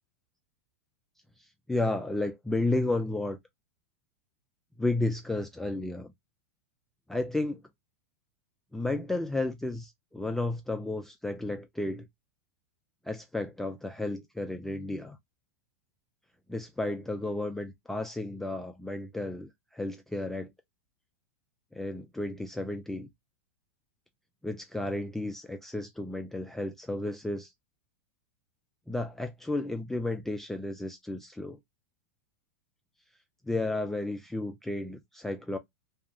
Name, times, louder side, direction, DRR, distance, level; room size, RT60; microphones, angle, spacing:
voice 1, 1.4-3.4 4.8-6.1 7.1-7.6 8.7-12.1 13.0-15.2 16.5-20.5 21.7-23.1 24.4-27.5 28.9-31.6 33.4-35.6, left 2 dB, 5° left, 0.3 m, -32 dB
2.8 x 2.3 x 2.2 m
hypercardioid pair, 100°, 8 cm